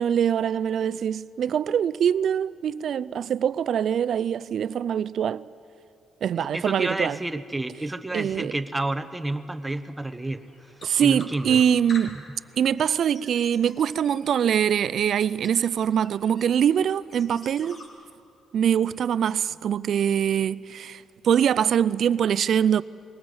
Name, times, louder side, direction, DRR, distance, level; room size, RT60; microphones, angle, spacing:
voice 1, 0.0-5.4 6.2-7.2 8.1-8.5 10.8-12.2 12.6-17.8 18.5-22.8, right 8 dB, 65° right, 0.5 m, -23 dB
voice 2, 6.5-10.4 11.0-11.6, right 2 dB, 10° right, 1.0 m, -30 dB
sound 1, 9.0-17.9, left 1 dB, 45° left, 4.6 m, -49 dB
21.5 x 18.5 x 7.9 m
cardioid pair, 90°, 0 cm